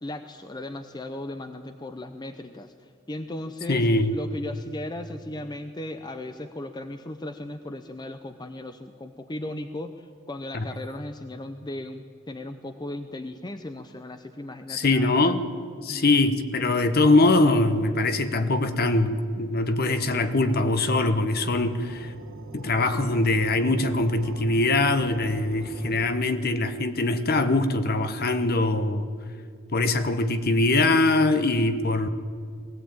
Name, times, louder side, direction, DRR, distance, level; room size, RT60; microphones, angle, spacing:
voice 1, 0.0-15.4 15.9-16.3, left 1 dB, 20° left, 8 dB, 0.6 m, -37 dB
voice 2, 3.7-4.2 10.5-10.7 14.7-15.4 15.8-22.1 22.5-29.1 29.7-32.1, left 2 dB, 45° left, 9 dB, 1.1 m, -22 dB
sound 1, 19.5-26.1, right 2 dB, 70° right, 1.9 m, -44 dB
20.0 x 16.0 x 8.9 m, 2.1 s
head